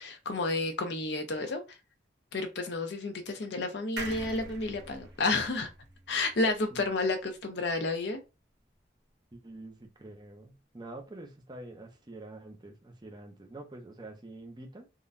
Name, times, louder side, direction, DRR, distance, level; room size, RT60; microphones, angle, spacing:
voice 1, 0.0-1.6 2.3-5.7 6.1-8.2, left 3 dB, 70° left, 0.6 m, -31 dB
sound 1, 4.0-7.4 7.8-7.9 8.1-8.2, right 2 dB, 75° right, 0.8 m, -44 dB
voice 2, 9.3-14.9, right 2 dB, 25° right, 0.6 m, -46 dB
3.7 x 2.2 x 2.5 m
head